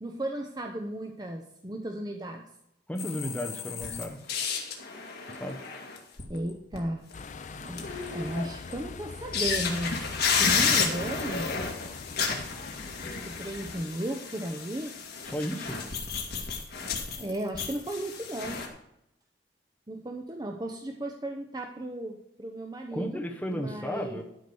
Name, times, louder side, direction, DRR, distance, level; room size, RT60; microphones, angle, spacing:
voice 1, 0.0-2.5 6.3-7.1 7.6-9.9 10.4-11.6 13.0-15.0 17.2-18.6 19.9-24.2, right 1 dB, 25° right, 3 dB, 0.8 m, -35 dB
voice 2, 2.9-4.2 5.3-5.6 15.2-15.8 22.9-24.2, equal, 10° left, 1 dB, 1.1 m, -34 dB
sound 1, 3.0-6.8 7.1-7.2 7.7-8.7 9.3-18.7, left 5 dB, 60° left, 1.9 m, -31 dB
sound 2, 7.1-13.8, left 4 dB, 40° left, 0.5 m, -42 dB
12.0 x 5.1 x 6.9 m, 0.81 s
head